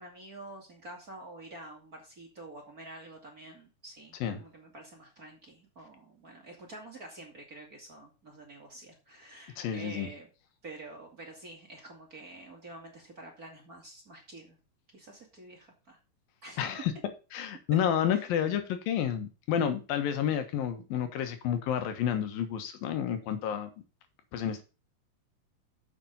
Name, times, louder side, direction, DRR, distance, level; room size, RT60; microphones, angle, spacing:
voice 1, 0.0-10.3 10.6-14.6 14.9-16.0 16.4-16.8 18.1-18.2, right 2 dB, 30° right, 2.1 m, -48 dB
voice 2, 9.6-10.1 16.6-16.9 17.3-23.7 24.3-24.6, left 9 dB, 90° left, 3.2 m, -30 dB
7.5 x 7.0 x 5.5 m
omnidirectional pair, 3.9 m